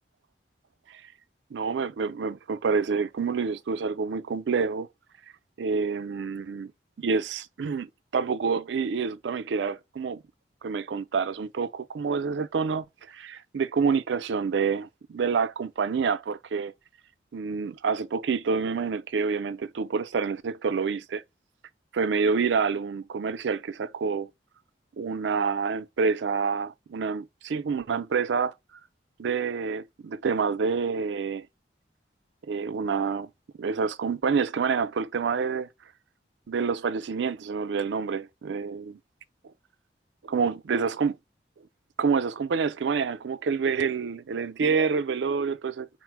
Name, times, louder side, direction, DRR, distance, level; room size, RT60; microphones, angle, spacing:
voice 1, 1.5-4.9 5.6-6.7 7.0-10.2 10.6-16.7 17.3-21.2 21.9-24.3 25.0-28.5 29.2-31.5 32.5-33.3 33.6-35.7 36.5-39.0 40.2-41.2 42.0-45.9, right 5 dB, 80° right, 0.4 m, -27 dB
4.3 x 2.1 x 4.5 m
head